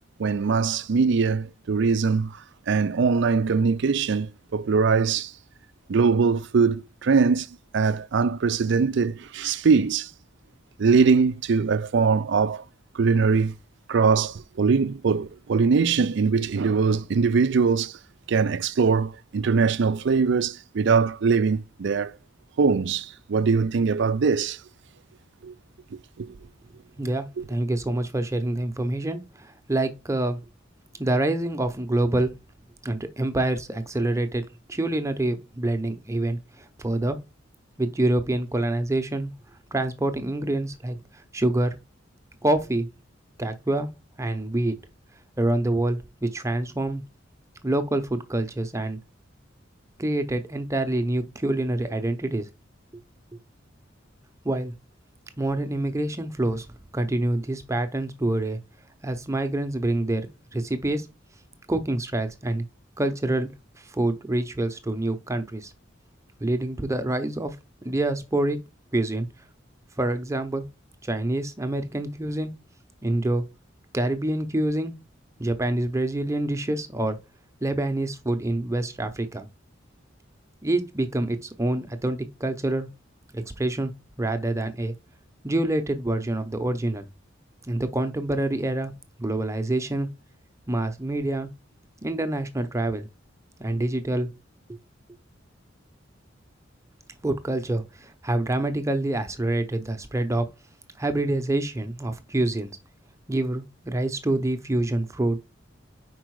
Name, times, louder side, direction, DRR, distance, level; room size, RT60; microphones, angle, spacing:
voice 1, 0.2-2.3 2.7-5.3 5.9-7.5 7.7-10.1 10.8-12.6 12.9-13.5 13.9-18.0 18.3-22.1 22.6-24.6 25.4-25.5 26.2-26.3 27.4-27.5, right 5 dB, 65° right, 0.4 m, -22 dB
voice 2, 27.0-30.4 31.0-32.4 32.8-37.2 37.8-39.3 39.7-41.0 41.3-41.8 42.4-42.9 43.4-43.9 44.2-44.7 45.4-47.0 47.6-49.0 50.0-52.5 54.4-54.7 55.4-56.7 56.9-58.6 59.0-60.3 60.5-61.1 61.7-62.6 63.0-63.5 63.9-65.7 66.4-67.6 67.8-68.6 68.9-69.3 70.0-70.7 71.0-72.5 73.0-73.4 73.9-74.9 75.4-77.2 77.6-79.5 80.6-82.9 83.3-83.9 84.2-84.9 85.4-87.1 87.7-88.9 89.2-90.1 90.7-91.5 92.0-93.1 93.6-94.3 94.7-94.8 97.2-100.5 101.0-102.7 103.3-105.5, right 1 dB, 15° right, 0.7 m, -26 dB
5.0 x 4.7 x 4.7 m
head